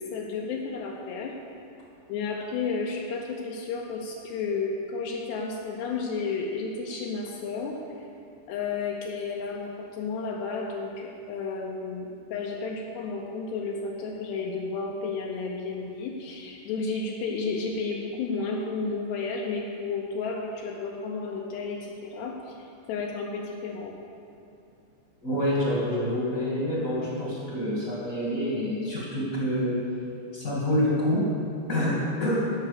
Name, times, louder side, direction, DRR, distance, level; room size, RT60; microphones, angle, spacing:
voice 1, 0.0-1.4 2.1-7.8 8.5-24.0, left 4 dB, 75° left, -1 dB, 2.9 m, -32 dB
voice 2, 25.2-29.8 30.3-31.2 31.7-31.9 32.2-32.4, left 1 dB, 30° left, -6 dB, 1.5 m, -27 dB
16.0 x 6.0 x 6.7 m, 2.7 s
omnidirectional pair, 5.2 m